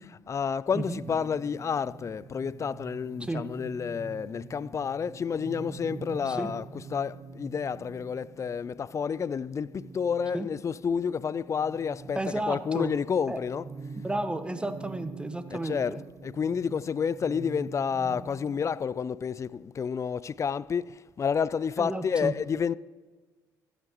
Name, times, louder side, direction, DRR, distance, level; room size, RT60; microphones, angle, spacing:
voice 1, 0.0-13.7 15.5-22.7, left 6 dB, 40° left, 0.3 m, -30 dB
sound 1, 0.7-18.7, right 4 dB, 40° right, 1.2 m, -45 dB
voice 2, 12.1-12.9 13.3-13.4 14.0-16.0 21.8-22.3, right 1 dB, 10° right, 0.9 m, -32 dB
15.5 x 8.9 x 3.1 m
supercardioid pair, 60°, 8 cm